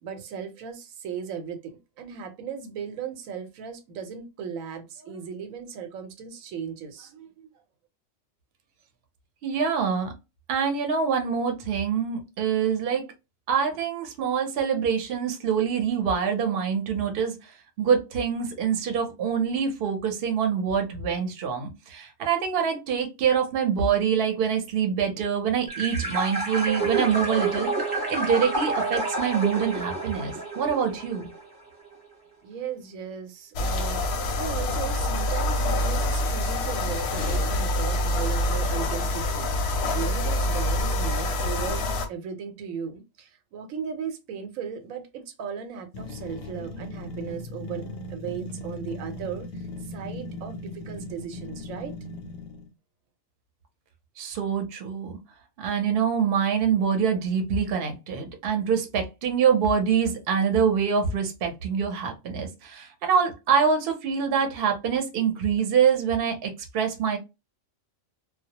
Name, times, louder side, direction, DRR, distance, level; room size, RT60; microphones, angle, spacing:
voice 1, 0.0-7.6 32.4-41.8 42.1-51.9, right 7 dB, 90° right, 1.0 m, -37 dB
voice 2, 9.4-10.1 10.5-13.0 13.5-17.3 17.8-27.7 28.1-31.3 54.2-55.2 55.6-67.2, right 7 dB, 55° right, 0.8 m, -25 dB
sound 1, 25.7-31.4, right 3 dB, 20° right, 0.8 m, -29 dB
sound 2, 33.5-42.1, left 1 dB, 65° left, 0.7 m, -26 dB
sound 3, 45.9-52.7, left 1 dB, 90° left, 1.0 m, -38 dB
2.2 x 2.0 x 2.7 m
omnidirectional pair, 1.4 m